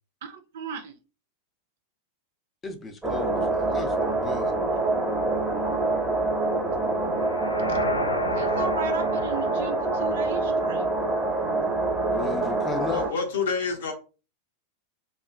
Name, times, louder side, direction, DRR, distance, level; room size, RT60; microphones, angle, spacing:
voice 1, 0.2-1.0 7.7-7.8 8.4-10.9, right 4 dB, 55° right, 0.3 m, -36 dB
voice 2, 2.6-4.6 12.1-13.1, left 4 dB, 20° left, 0.5 m, -35 dB
sound 1, 3.0-13.1, right 2 dB, ahead, 0.8 m, -26 dB
sound 2, 7.1-11.2, left 2 dB, 80° left, 0.3 m, -33 dB
voice 3, 12.4-13.9, left 5 dB, 60° left, 0.7 m, -29 dB
2.8 x 2.3 x 2.4 m
figure-of-eight pair, 90°, 0 cm